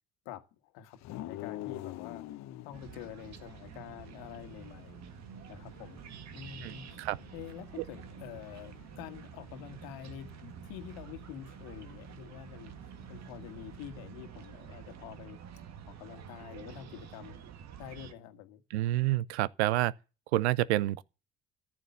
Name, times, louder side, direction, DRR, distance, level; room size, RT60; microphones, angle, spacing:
voice 1, 0.3-2.3 2.6-5.0 5.5-6.0 6.3-6.9 7.3-12.7 13.1-15.4 15.9-17.4 17.8-18.6, left 11 dB, 70° left, 1.8 m, -47 dB
sound 1, 1.0-13.8, left 14 dB, 55° left, 1.0 m, -49 dB
sound 2, 2.7-18.1, right 8 dB, 55° right, 1.8 m, -49 dB
voice 2, 6.6-7.2 18.7-19.9 20.3-21.0, right 16 dB, 75° right, 0.7 m, -28 dB
14.5 x 8.9 x 7.0 m
hypercardioid pair, 60°, 33 cm